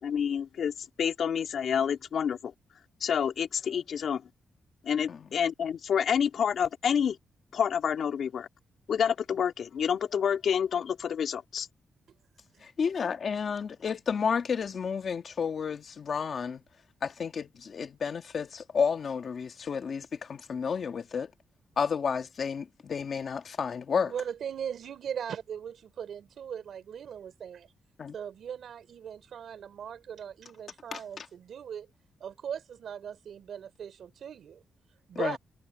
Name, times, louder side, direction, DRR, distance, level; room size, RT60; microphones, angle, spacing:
voice 1, 0.0-0.7 1.0-2.5 3.0-4.2 4.8-7.2 7.5-8.5 8.9-11.7, left 8 dB, 65° left, 2.6 m, -28 dB
voice 2, 12.6-16.6 17.0-21.3 21.8-24.1 28.0-28.1 30.9-31.3 35.1-35.4, left 6 dB, 50° left, 1.5 m, -31 dB
voice 3, 24.1-27.7 28.1-31.9 32.2-34.6 35.1-35.4, right 8 dB, 70° right, 3.5 m, -39 dB
wide cardioid pair, 130°, 0 cm